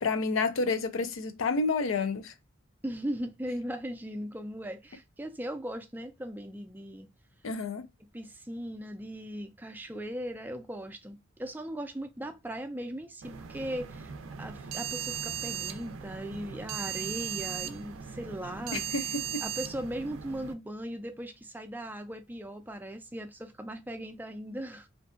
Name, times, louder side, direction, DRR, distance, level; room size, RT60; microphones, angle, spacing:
voice 1, 0.0-2.3 7.4-7.9 18.7-19.4, left 4 dB, 85° left, 0.5 m, -29 dB
voice 2, 2.8-7.1 8.1-14.1 14.4-18.8 19.4-24.9, right 1 dB, 10° right, 0.3 m, -38 dB
sound 1, 13.2-20.5, right 9 dB, 85° right, 0.4 m, -38 dB
2.6 x 2.2 x 2.4 m
head